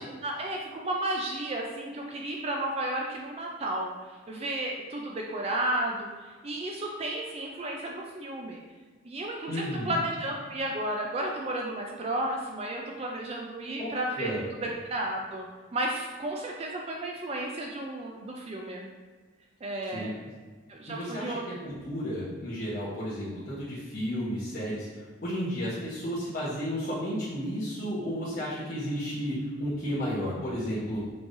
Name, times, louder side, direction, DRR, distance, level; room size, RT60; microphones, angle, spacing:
voice 1, 0.2-8.6 9.0-14.6 14.9-18.9 19.6-20.1 20.7-21.4, right 1 dB, 30° right, 0 dB, 0.3 m, -33 dB
voice 2, 9.5-10.0 13.8-13.9 14.2-14.4 19.9-20.1 20.9-31.0, equal, 45° left, -11 dB, 1.0 m, -33 dB
6.0 x 3.2 x 2.5 m, 1.4 s
head